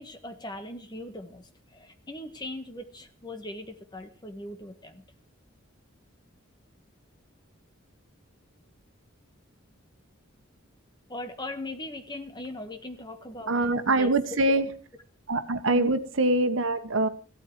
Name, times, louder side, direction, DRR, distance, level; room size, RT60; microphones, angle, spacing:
voice 1, 0.0-5.0 11.1-13.5 14.0-14.1 15.7-15.9, left 1 dB, 20° left, 7 dB, 1.6 m, -39 dB
voice 2, 13.5-14.7 15.3-17.1, right 2 dB, 70° right, 9 dB, 1.5 m, -24 dB
15.5 x 13.0 x 4.7 m, 0.39 s
head